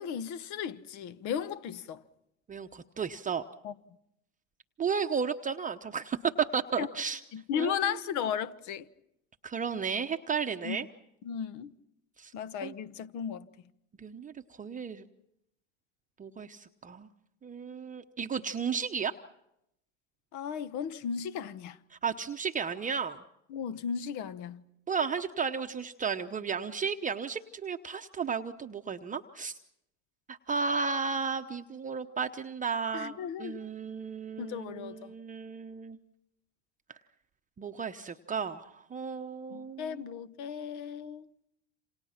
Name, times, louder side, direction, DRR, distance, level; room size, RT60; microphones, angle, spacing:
voice 1, 0.0-2.0 3.6-3.7 6.8-6.9 7.3-8.9 10.6-10.8 11.2-11.7 12.3-13.5 20.3-21.8 23.5-24.6 32.9-33.7 34.4-35.1 39.5-41.3, left 8 dB, 50° left, 1.3 m, -35 dB
voice 2, 2.5-3.4 4.8-7.2 7.6-7.7 9.4-10.9 12.2-12.3 12.6-12.7 14.0-14.3 14.6-15.0 16.2-17.1 17.4-19.1 21.9-23.2 24.9-29.5 30.3-36.0 37.6-40.0, right 6 dB, 20° right, 1.0 m, -33 dB
28.0 x 27.5 x 5.9 m
hypercardioid pair, 90°, 37 cm